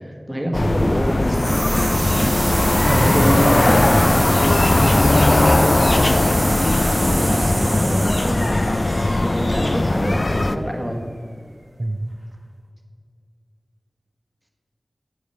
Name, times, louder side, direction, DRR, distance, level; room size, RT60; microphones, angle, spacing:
voice 1, 0.0-1.6 2.1-2.7 3.0-4.3 5.1-5.4 7.1-11.0, equal, 15° right, 2 dB, 1.3 m, -26 dB
sound 1, 0.5-10.6, left 2 dB, 50° left, 0.4 m, -18 dB
sound 2, 1.2-10.1, right 2 dB, 85° right, 1.1 m, -28 dB
voice 2, 2.9-3.8 4.8-5.2 6.4-6.8 7.5-7.9 11.8-12.1, right 1 dB, 50° right, 2 dB, 0.6 m, -25 dB
9.5 x 5.0 x 5.4 m, 2.2 s
wide cardioid pair, 50°, 0 cm